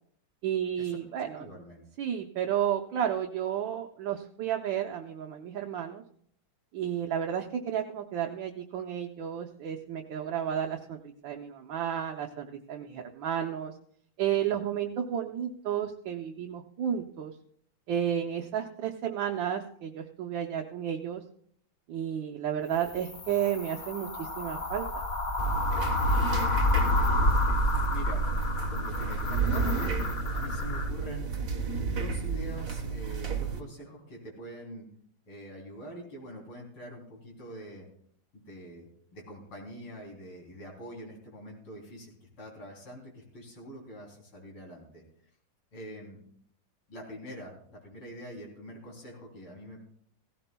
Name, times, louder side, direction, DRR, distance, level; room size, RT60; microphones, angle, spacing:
voice 1, 0.4-1.5 2.0-6.0 6.7-13.7 14.2-17.3 17.9-21.2 21.9-24.8, right 9 dB, 70° right, 2 dB, 1.4 m, -32 dB
voice 2, 1.4-1.8 25.9-28.2 28.7-30.0 30.3-31.3 31.8-34.9 35.3-37.9 38.3-45.0 45.7-46.2 46.9-49.8, equal, 90° left, -1 dB, 4.2 m, -45 dB
sound 1, 22.7-30.9, left 1 dB, 60° left, 0.4 m, -29 dB
sound 2, 25.4-33.6, right 5 dB, 45° right, 1.4 m, -31 dB
16.5 x 16.5 x 2.3 m, 0.64 s
omnidirectional pair, 2.3 m